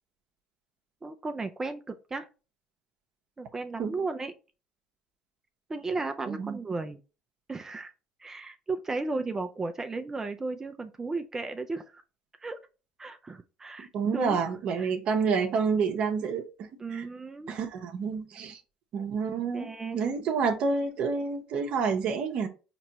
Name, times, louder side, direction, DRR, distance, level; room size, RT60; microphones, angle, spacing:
voice 1, 1.0-2.3 3.4-4.3 5.7-7.0 7.5-7.9 8.2-12.0 12.4-12.6 13.0-14.4 14.8-14.9 16.8-17.5 19.5-20.0, right 3 dB, 20° right, 0.4 m, -35 dB
voice 2, 6.3-6.6 13.8-17.0 17.5-18.6 18.9-22.5, right 5 dB, 60° right, 0.7 m, -29 dB
4.3 x 3.0 x 2.9 m
supercardioid pair, 75°, 2 cm